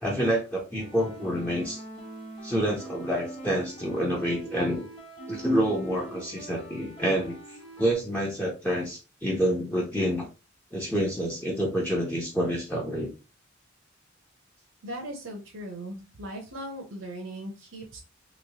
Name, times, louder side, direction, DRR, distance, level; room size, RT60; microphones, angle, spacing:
voice 1, 0.0-1.8 2.4-4.9 5.3-7.4 7.8-10.2 10.7-13.1, equal, 10° left, -2 dB, 0.6 m, -28 dB
sound 1, 0.8-7.9, right 2 dB, 25° left, 1.1 m, -43 dB
voice 2, 14.8-18.0, right 1 dB, 65° right, 0 dB, 0.7 m, -38 dB
3.1 x 3.0 x 2.7 m, 0.31 s
head